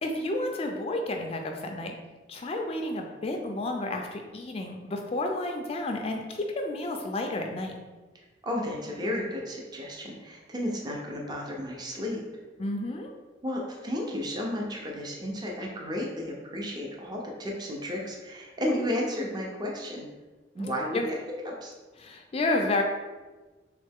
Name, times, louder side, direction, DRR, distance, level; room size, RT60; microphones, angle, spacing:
voice 1, 0.0-2.0 2.3-7.8 12.6-13.1 20.6-21.1 22.0-22.8, left 2 dB, 35° left, 3 dB, 0.3 m, -31 dB
voice 2, 8.4-12.2 13.4-20.1 20.5-21.2 21.4-21.7, left 1 dB, 25° right, -1 dB, 0.6 m, -33 dB
3.5 x 3.2 x 3.5 m, 1.3 s
head